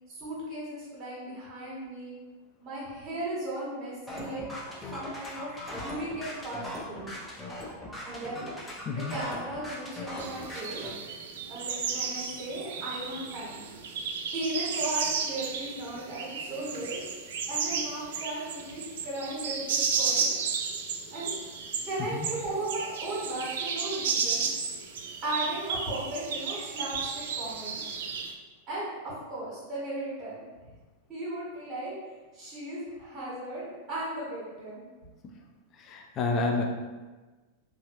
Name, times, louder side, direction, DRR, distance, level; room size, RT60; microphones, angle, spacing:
voice 1, 0.1-2.2 2.6-4.5 4.8-7.2 8.0-8.5 8.9-10.9 11.5-13.7 14.3-17.0 17.5-20.3 21.1-21.4 21.9-24.4 25.2-27.9 28.7-30.4 31.1-32.0 32.3-34.8, right 1 dB, 35° right, -7 dB, 1.2 m, -36 dB
sound 1, 4.1-10.9, left 1 dB, 10° left, 0.7 m, -39 dB
sound 2, 10.2-28.3, right 5 dB, 55° right, 0.3 m, -33 dB
voice 2, 35.9-36.6, left 3 dB, 30° left, 2 dB, 0.4 m, -29 dB
3.9 x 2.4 x 2.9 m, 1.3 s
figure-of-eight pair, 90°, 0 cm